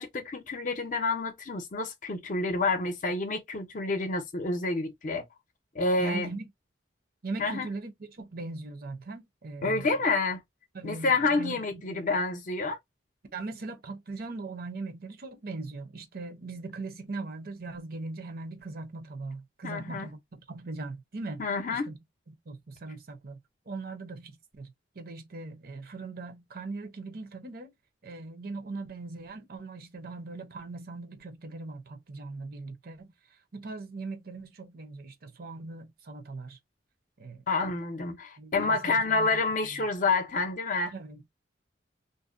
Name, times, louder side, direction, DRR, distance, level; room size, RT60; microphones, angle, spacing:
voice 1, 0.0-5.3 5.7-6.3 7.4-7.7 9.6-10.4 10.8-12.8 19.6-20.1 21.4-21.9 37.5-40.9, left 3 dB, 40° left, 0.6 m, -28 dB
voice 2, 6.0-6.5 7.2-9.9 10.7-12.2 13.3-21.4 21.7-22.0 22.3-23.4 23.7-27.7 28.0-33.1 33.5-36.6 37.2-37.4 38.4-39.4 40.9-41.3, right 3 dB, 50° right, 0.6 m, -40 dB
2.6 x 2.1 x 2.4 m
head